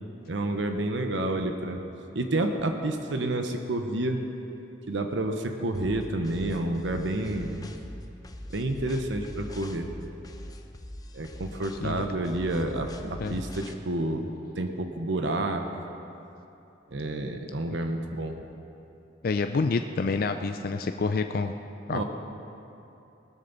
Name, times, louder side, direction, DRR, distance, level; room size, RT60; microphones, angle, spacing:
voice 1, 0.3-1.8 2.1-4.2 4.9-7.6 8.5-9.9 11.1-14.3 14.5-15.7 16.9-18.4 21.9-22.0, right 1 dB, 80° right, 5 dB, 1.0 m, -29 dB
sound 1, 5.7-13.7, left 1 dB, 20° left, 0.7 m, -42 dB
voice 2, 19.2-21.5 21.9-22.0, left 4 dB, 50° left, 7 dB, 0.4 m, -28 dB
19.5 x 12.5 x 4.0 m, 2.9 s
head